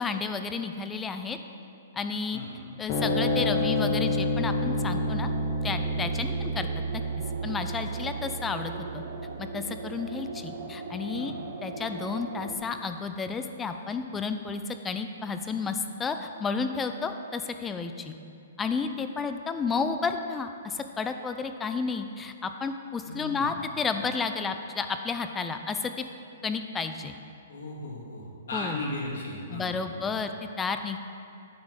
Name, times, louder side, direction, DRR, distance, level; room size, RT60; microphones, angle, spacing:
voice 1, 0.0-1.4 1.9-2.4 2.8-5.3 5.6-6.7 6.9-7.0 7.4-9.0 9.4-11.3 11.6-18.1 18.6-26.0 26.4-27.2 28.5-28.8 29.5-30.3 30.6-31.0, left 5 dB, 15° left, 8 dB, 0.4 m, -31 dB
sound 1, 2.9-9.5, equal, 40° left, 1.5 m, -29 dB
sound 2, 4.4-12.6, right 3 dB, 75° right, 0.8 m, -40 dB
voice 2, 23.1-23.6 27.5-30.1, left 1 dB, 75° left, -3 dB, 2.2 m, -36 dB
9.5 x 4.0 x 6.5 m, 2.5 s
hypercardioid pair, 145°, 0 cm